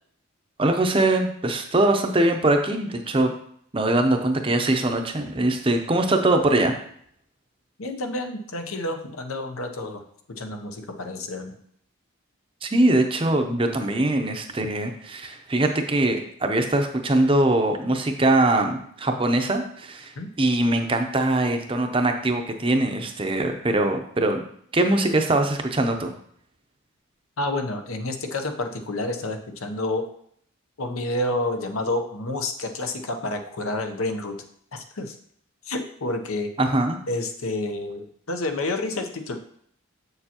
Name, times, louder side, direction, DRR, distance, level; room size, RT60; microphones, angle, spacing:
voice 1, 0.6-3.3 3.7-6.7 12.6-24.5 24.7-26.1 36.6-37.0, right 2 dB, 25° right, 5 dB, 0.6 m, -22 dB
voice 2, 7.8-10.0 10.4-11.6 20.2-20.3 27.4-30.0 30.8-34.4 34.7-35.2 35.6-36.5 37.1-39.4, left 2 dB, 80° left, 5 dB, 0.8 m, -29 dB
7.3 x 6.7 x 2.9 m, 0.65 s
head